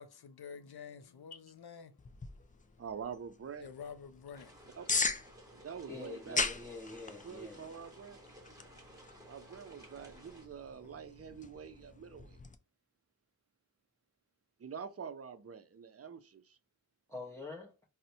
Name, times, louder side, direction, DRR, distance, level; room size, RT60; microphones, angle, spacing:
voice 1, 0.0-2.8 3.6-4.8, left 6 dB, 75° left, 0.5 m, -50 dB
sound 1, 2.0-12.6, left 4 dB, 25° left, 0.3 m, -41 dB
voice 2, 2.8-3.7 4.8-4.9 5.6-6.5 7.2-8.2 9.2-12.4 14.6-16.6, right 7 dB, 40° right, 0.5 m, -46 dB
sound 2, 4.3-10.5, right 1 dB, 10° right, 1.1 m, -57 dB
voice 3, 5.9-7.6 17.1-17.7, left 3 dB, 5° left, 0.7 m, -45 dB
4.0 x 2.1 x 2.6 m
wide cardioid pair, 60°, 38 cm